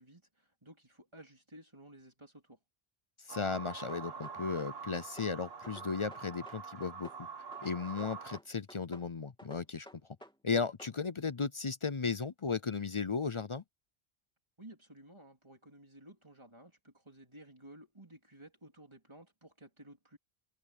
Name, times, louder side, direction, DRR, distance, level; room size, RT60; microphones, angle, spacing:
voice 1, 0.0-2.6 14.6-20.2, right 1 dB, 25° right, 3.7 m, -55 dB
voice 2, 3.3-7.1 7.6-9.9 10.4-13.6, left 5 dB, 40° left, 0.5 m, -35 dB
sound 1, 3.3-8.4, right 5 dB, 70° right, 1.4 m, -45 dB
sound 2, 3.9-5.3 5.6-7.2 7.5-9.1 9.4-11.0, equal, 5° left, 3.2 m, -54 dB
omnidirectional pair, 1.1 m